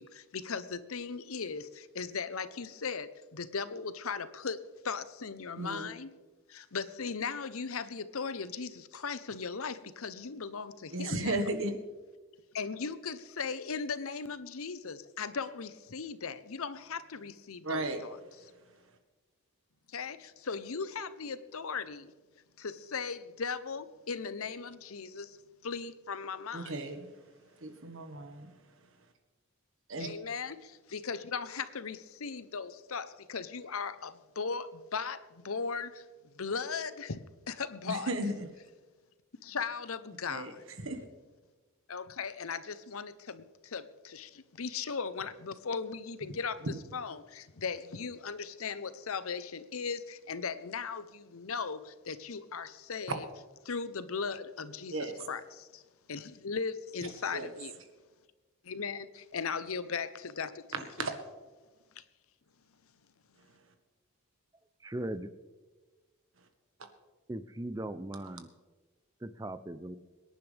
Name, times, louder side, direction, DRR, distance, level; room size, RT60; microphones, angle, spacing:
voice 1, 0.0-6.1 6.5-11.4 12.5-18.2 19.9-22.1 22.6-25.4 25.6-26.8 30.0-37.2 37.5-38.1 39.4-40.6 41.9-53.3 53.6-55.8 56.1-57.7 58.6-60.7 61.0-61.1 62.0-62.1, left 5 dB, 75° left, 0.8 m, -38 dB
voice 2, 5.6-5.9 10.9-11.7 17.6-18.0 26.5-27.1 27.6-28.5 29.9-30.1 37.9-38.3 40.3-40.5 40.8-41.0 54.9-55.1 57.3-57.5 60.7-61.1, right 2 dB, 60° right, 1.5 m, -34 dB
voice 3, 64.8-65.3 67.3-68.5 69.2-70.0, right 1 dB, 15° right, 0.5 m, -38 dB
24.0 x 10.5 x 3.4 m
head